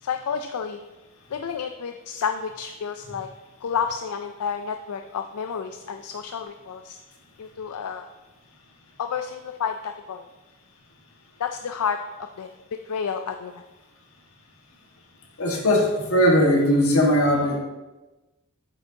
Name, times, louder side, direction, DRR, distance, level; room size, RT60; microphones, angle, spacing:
voice 1, 0.0-0.8 1.3-3.3 3.6-7.0 7.4-8.1 9.0-10.3 11.4-12.5 12.8-13.6, left 6 dB, 85° left, 7 dB, 0.4 m, -30 dB
voice 2, 15.4-17.6, equal, 65° left, -1 dB, 1.7 m, -19 dB
8.8 x 6.8 x 2.8 m, 1.1 s
head